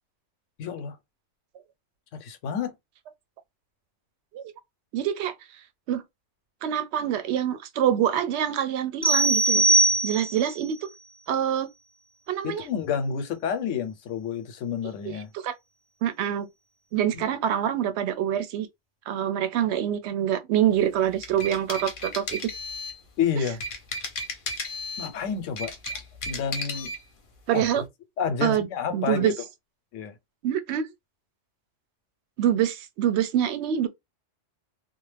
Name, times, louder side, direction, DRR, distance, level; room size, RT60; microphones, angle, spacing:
voice 1, 0.6-1.0 2.1-2.7 9.5-10.0 12.4-15.3 17.1-17.2 23.2-23.6 25.0-25.7 26.3-26.9 27.5-27.8 28.2-29.3 29.9-30.1, left 7 dB, 90° left, 1.0 m, -29 dB
voice 2, 4.9-5.3 5.9-6.0 6.6-9.6 10.0-10.9 11.3-11.7 12.3-12.6 15.4-15.5 16.0-16.5 16.9-18.7 19.1-22.5 27.5-27.8 28.4-28.7 28.9-29.3 30.4-30.9 32.4-33.9, right 10 dB, 70° right, 0.8 m, -25 dB
sound 1, 9.0-10.6, right 2 dB, 15° left, 0.8 m, -21 dB
sound 2, 21.0-23.0 23.5-25.1 25.5-27.0, left 2 dB, 50° left, 0.7 m, -34 dB
2.4 x 2.2 x 3.2 m
omnidirectional pair, 1.2 m